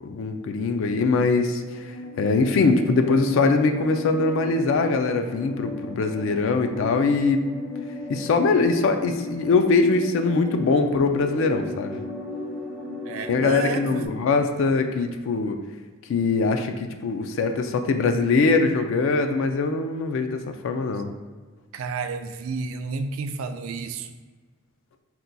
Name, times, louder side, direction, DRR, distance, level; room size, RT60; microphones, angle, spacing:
voice 1, 0.0-7.4 8.1-12.0 13.3-15.6 16.1-21.1, left 4 dB, 65° left, 7 dB, 0.3 m, -22 dB
sound 1, 1.3-14.1, left 2 dB, 5° right, 0.4 m, -36 dB
voice 2, 13.1-14.1 21.7-24.1, right 4 dB, 65° right, 9 dB, 0.3 m, -31 dB
4.4 x 2.2 x 3.9 m, 1.4 s
head